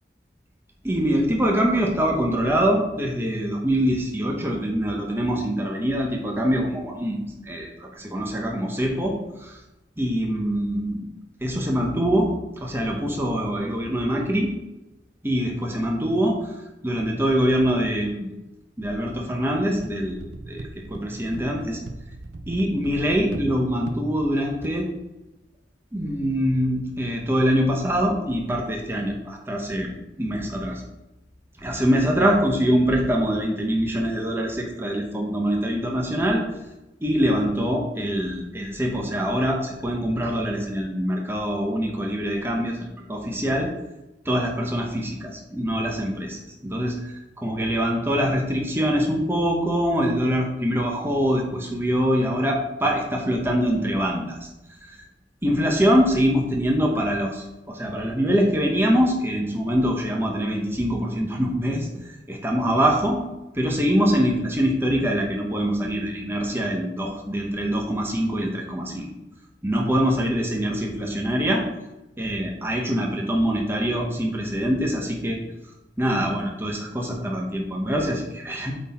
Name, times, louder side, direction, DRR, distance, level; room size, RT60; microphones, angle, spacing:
voice 1, 0.8-7.2 7.5-9.6 10.0-11.0 11.4-12.3 12.6-14.5 15.2-16.6 16.8-18.3 18.8-21.8 22.5-24.9 25.9-30.8 31.6-36.4 37.0-43.7 44.2-54.5 54.9-55.0 55.4-63.2 63.5-69.1 69.6-71.6 72.2-75.4 76.0-78.7, equal, 15° right, 0 dB, 1.0 m, -24 dB
sound 1, 19.7-24.7, right 2 dB, 70° right, 0.5 m, -38 dB
8.1 x 4.1 x 4.3 m, 0.96 s
head